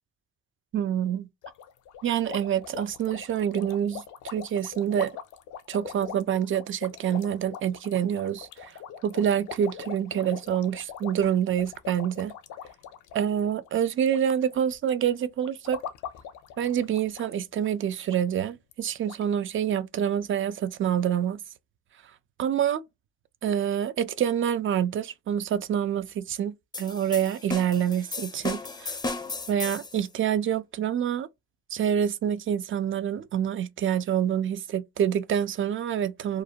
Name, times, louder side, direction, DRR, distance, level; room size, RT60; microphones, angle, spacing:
voice 1, 0.7-1.3 2.0-5.1 5.7-8.7 9.0-12.3 13.1-15.8 16.6-21.4 22.4-22.8 23.4-29.0 29.5-31.3 31.7-36.4, right 9 dB, 45° right, 0.4 m, -27 dB
sound 1, 1.4-14.2 14.5-14.9 15.4-17.3 17.6-17.7 18.1-18.2 18.7-18.8 19.1-19.2, left 8 dB, 75° left, 0.5 m, -42 dB
sound 2, 26.7-30.0, left 3 dB, 15° left, 0.5 m, -35 dB
2.5 x 2.1 x 2.8 m
cardioid pair, 90°, 30 cm